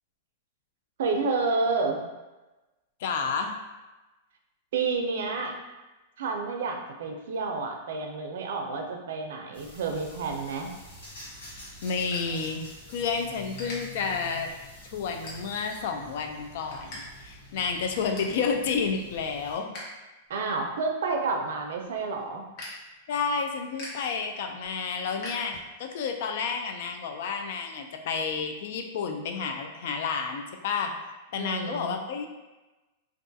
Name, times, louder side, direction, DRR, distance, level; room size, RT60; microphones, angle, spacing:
voice 1, 1.0-2.0 4.7-5.6 6.2-10.7 20.3-22.4 31.3-32.0, right 4 dB, 75° right, 3 dB, 0.4 m, -29 dB
voice 2, 3.0-3.6 11.8-12.6 12.9-14.5 14.9-19.7 23.1-30.9 31.3-32.3, left 5 dB, 65° left, 5 dB, 0.3 m, -30 dB
sound 1, 9.5-19.6, left 1 dB, 90° left, 1.0 m, -47 dB
sound 2, 11.0-13.0 13.3-13.8 14.3-14.6 15.1-15.8 16.2-17.0 17.3-17.4 17.8-18.4 18.9-19.8 20.2-26.0, left 1 dB, 45° left, 1.0 m, -45 dB
2.3 x 2.3 x 2.6 m, 1.1 s
hypercardioid pair, 135°, 0 cm